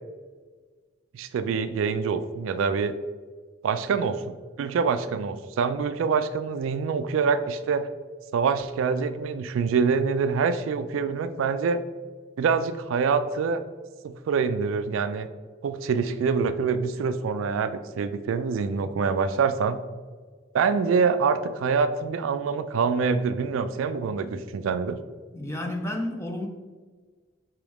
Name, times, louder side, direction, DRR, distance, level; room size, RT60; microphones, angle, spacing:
voice 1, 1.1-2.9 3.6-7.9 8.3-11.8 12.4-13.6 14.0-15.3 15.6-19.8 20.5-25.0, right 5 dB, 80° right, 11 dB, 0.3 m, -25 dB
voice 2, 25.3-26.5, left 1 dB, 15° left, 3 dB, 0.4 m, -31 dB
4.8 x 3.0 x 3.4 m, 1.4 s
head